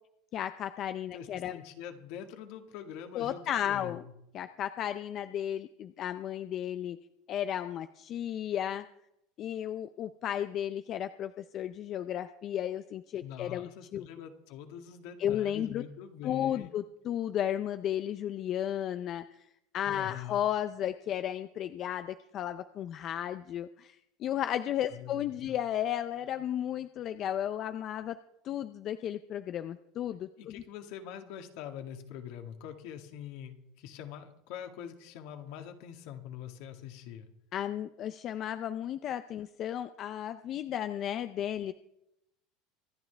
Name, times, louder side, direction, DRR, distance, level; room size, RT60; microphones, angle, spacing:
voice 1, 0.3-1.6 3.1-4.0 4.3-7.0 7.3-8.9 9.4-14.1 15.2-15.8 16.2-19.2 19.7-28.2 28.4-30.6 37.5-41.7, left 10 dB, 40° left, 10 dB, 0.5 m, -34 dB
voice 2, 1.1-4.1 13.2-16.7 19.9-20.4 24.9-25.6 30.4-37.3, left 9 dB, 65° left, 5 dB, 1.9 m, -44 dB
25.5 x 9.5 x 3.4 m, 0.82 s
supercardioid pair, 135°, 0 cm